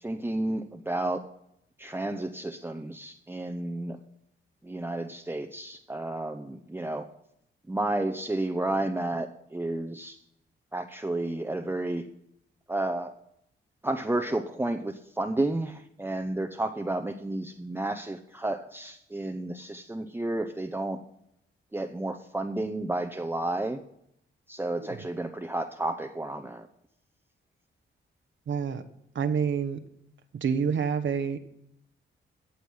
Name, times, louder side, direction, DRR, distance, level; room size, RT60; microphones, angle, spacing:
voice 1, 0.0-1.2 1.8-4.0 4.6-7.1 7.7-10.2 10.7-12.0 12.7-13.1 13.8-21.0 21.7-23.8 24.5-26.7, right 2 dB, 10° right, 6 dB, 0.9 m, -31 dB
voice 2, 28.5-28.8 29.1-29.8 30.4-31.4, right 6 dB, 65° right, 8 dB, 1.1 m, -27 dB
15.0 x 8.0 x 5.6 m, 0.75 s
cardioid pair, 80°, 21 cm